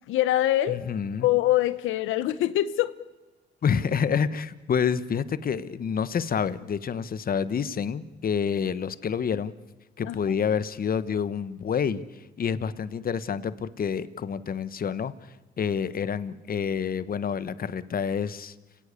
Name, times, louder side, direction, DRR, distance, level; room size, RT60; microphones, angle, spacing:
voice 1, 0.1-0.8 1.2-2.9 10.0-10.4, left 14 dB, 90° left, 13 dB, 0.9 m, -24 dB
voice 2, 0.7-1.3 3.6-9.5 10.0-12.0 12.4-15.1 15.6-18.5, left 7 dB, 45° left, 15 dB, 1.3 m, -28 dB
29.0 x 17.5 x 8.3 m, 1.2 s
cardioid pair, 90°, 20 cm